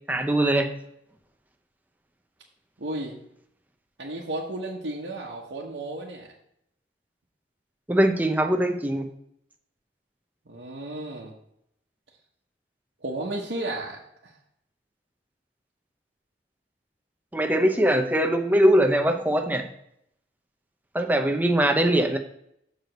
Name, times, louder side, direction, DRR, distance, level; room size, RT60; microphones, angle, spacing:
voice 1, 0.1-0.7 7.9-9.1 17.3-19.7 20.9-22.2, right 1 dB, 10° right, 4 dB, 0.8 m, -21 dB
voice 2, 2.8-3.1 4.0-6.3 10.5-11.3 13.0-14.3, right 2 dB, 75° right, -5 dB, 1.1 m, -33 dB
6.7 x 4.8 x 6.5 m, 0.74 s
head